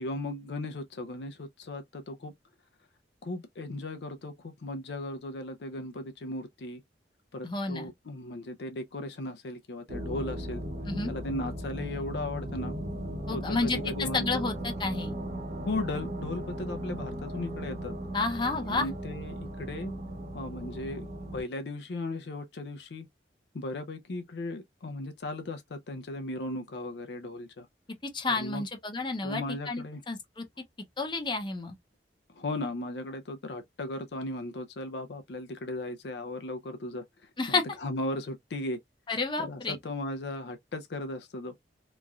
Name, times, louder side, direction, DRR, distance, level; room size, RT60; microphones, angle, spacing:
voice 1, 0.0-2.3 3.2-6.8 7.3-10.6 11.1-12.8 13.3-14.4 15.7-17.9 18.6-19.9 20.3-21.1 21.3-23.1 23.5-27.7 28.4-28.6 29.2-30.0 32.3-37.0 37.5-38.8 39.4-41.5, left 2 dB, 70° left, 0.5 m, -36 dB
voice 2, 7.4-7.9 10.8-11.1 13.3-15.1 18.1-18.9 28.0-30.4 31.0-31.8 37.4-37.6 39.1-39.8, left 3 dB, 25° left, 0.6 m, -31 dB
sound 1, 9.9-21.4, right 1 dB, 40° right, 0.6 m, -37 dB
3.0 x 2.5 x 2.3 m
head